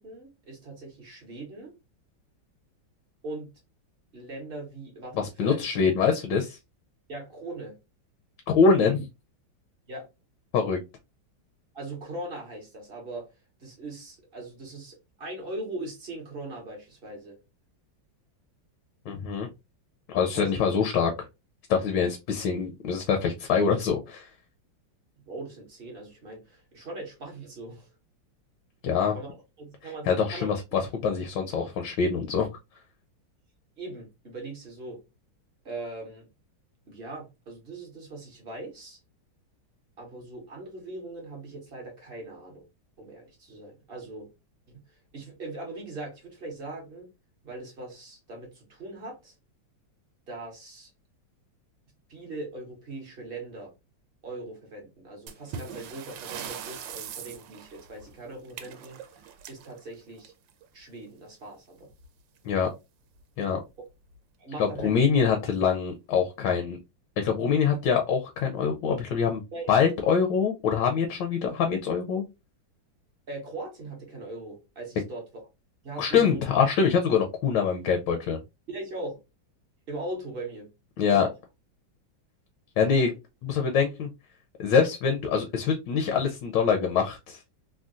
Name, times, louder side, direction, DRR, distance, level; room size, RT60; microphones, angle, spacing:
voice 1, 0.0-1.8 3.2-3.5 4.1-5.6 7.1-7.8 9.9-10.1 11.7-13.3 13.6-17.4 20.3-20.6 25.2-27.9 29.1-29.3 29.6-30.9 33.8-35.0 35.6-36.3 36.9-39.0 40.0-42.7 43.0-44.3 44.7-47.1 47.4-49.3 50.3-50.9 52.1-53.7 54.2-60.3 60.7-61.9 64.4-65.0 69.5-69.7 73.3-75.2 75.8-76.6 78.7-79.2 79.9-80.7 81.0-81.3, right 2 dB, 45° right, 0.7 m, -40 dB
voice 2, 5.1-6.6 8.5-9.1 10.5-10.8 19.1-19.5 20.1-21.1 21.7-24.3 28.8-29.1 30.1-32.5 62.4-62.7 63.4-63.6 64.6-66.8 67.2-69.4 69.7-72.2 76.0-78.4 81.0-81.3 82.8-83.1 83.4-84.1 84.6-87.5, left 6 dB, 75° left, 1.2 m, -24 dB
sound 1, 55.3-60.6 61.9-62.1 62.4-62.5 63.1-63.2 63.9-64.2, right 8 dB, 75° right, 1.2 m, -41 dB
3.7 x 2.2 x 2.4 m
omnidirectional pair, 2.1 m